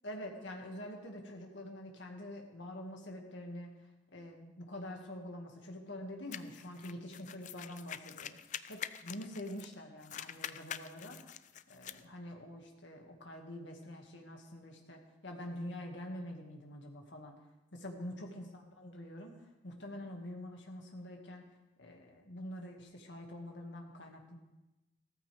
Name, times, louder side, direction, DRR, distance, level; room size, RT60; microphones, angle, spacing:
voice 1, 0.0-11.3 11.7-17.3 17.7-19.4 19.6-21.5 21.8-24.4, left 1 dB, 70° left, 2 dB, 2.0 m, -46 dB
sound 1, 6.3-9.7 10.0-12.0, left 9 dB, 40° left, 0.4 m, -45 dB
15.5 x 14.0 x 3.5 m, 1.0 s
head